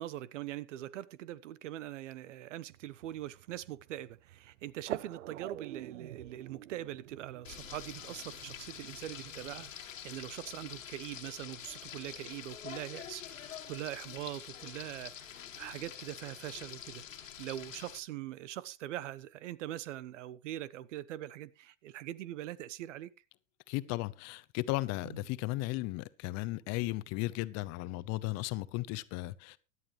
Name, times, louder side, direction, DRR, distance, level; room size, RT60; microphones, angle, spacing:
voice 1, 0.0-23.1 25.0-25.2, right 13 dB, 70° right, 1.0 m, -42 dB
sound 1, 2.7-9.7, right 14 dB, 85° right, 0.6 m, -48 dB
Frying (food), 7.4-18.0, left 9 dB, 90° left, 1.8 m, -47 dB
voice 2, 23.7-29.6, left 19 dB, 45° left, 0.8 m, -35 dB
17.0 x 11.0 x 3.1 m
hypercardioid pair, 115°, 38 cm